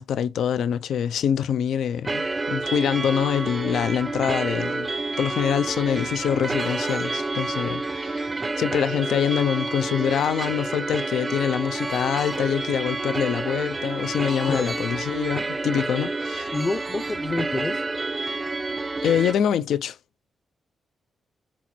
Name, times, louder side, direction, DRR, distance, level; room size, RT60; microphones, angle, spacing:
voice 1, 0.0-4.9 5.2-16.5 19.0-20.0, left 9 dB, 85° left, 0.6 m, -25 dB
sound 1, 2.0-19.3, right 3 dB, 20° right, 0.4 m, -29 dB
voice 2, 16.5-17.8, left 3 dB, 20° left, 0.6 m, -28 dB
5.1 x 4.4 x 6.0 m
wide cardioid pair, 155°, 0 cm